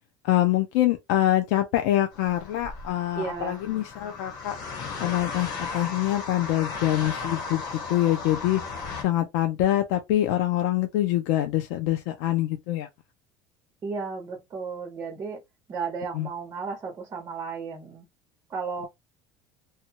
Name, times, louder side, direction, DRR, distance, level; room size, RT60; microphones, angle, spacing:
voice 1, 0.2-4.5 5.0-8.6 9.0-12.9 16.1-16.3, left 14 dB, 80° left, 0.5 m, -25 dB
sound 1, 2.1-9.0, left 4 dB, 55° left, 1.4 m, -36 dB
voice 2, 3.2-3.6 13.8-15.4 15.7-18.1 18.5-18.8, right 5 dB, 25° right, 0.9 m, -34 dB
2.8 x 2.3 x 2.8 m
cardioid pair, 165°, 9 cm